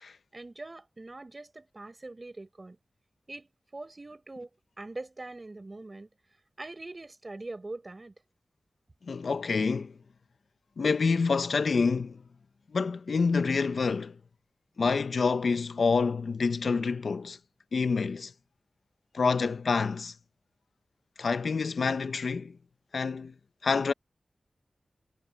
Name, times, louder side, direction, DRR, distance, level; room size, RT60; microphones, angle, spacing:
voice 1, 0.3-2.8 3.3-4.5 4.8-6.1 6.6-8.1, right 2 dB, 35° right, 6.0 m, -43 dB
voice 2, 9.1-9.9 10.8-12.2 12.7-14.1 14.8-17.4 17.7-18.3 19.1-20.1 21.2-22.6 22.9-23.3 23.6-23.9, left 4 dB, 75° left, 0.7 m, -27 dB
wide cardioid pair, 90°, 0 cm